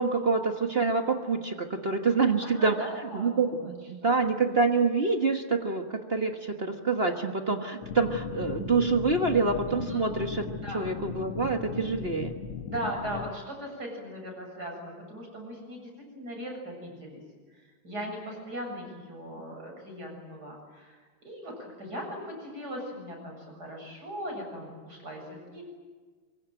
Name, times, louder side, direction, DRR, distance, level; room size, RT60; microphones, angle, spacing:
voice 1, 0.0-2.7 3.1-10.4 10.7-12.3, right 4 dB, 30° right, 4 dB, 1.5 m, -26 dB
voice 2, 2.4-3.3 3.6-3.7 4.0-4.1 9.9-10.0 10.6-10.8 12.7-17.2 17.5-25.6, equal, 50° right, 1 dB, 8.2 m, -39 dB
sound 1, 7.8-13.3, left 7 dB, 80° left, 2.1 m, -37 dB
24.5 x 23.0 x 9.0 m, 1.4 s
omnidirectional pair, 2.3 m